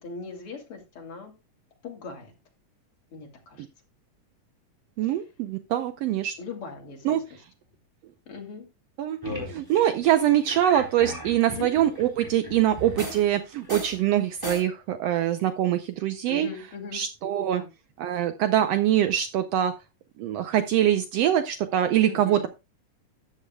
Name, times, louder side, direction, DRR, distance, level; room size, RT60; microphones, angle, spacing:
voice 1, 0.0-1.3 1.8-2.3 3.1-3.6 5.0-5.1 6.4-7.4 8.3-8.7 11.5-11.7 16.3-17.0 17.5-17.7 22.1-22.5, left 4 dB, 45° left, 2 dB, 3.1 m, -39 dB
voice 2, 5.0-6.3 7.0-7.2 9.0-9.2 9.5-16.5 16.9-17.6 18.0-19.7 20.2-22.5, right 11 dB, 85° right, 9 dB, 1.4 m, -24 dB
sound 1, 9.2-13.3 13.6-14.6, equal, 5° right, 3.4 m, -36 dB
13.0 x 9.9 x 2.3 m, 0.25 s
omnidirectional pair, 3.8 m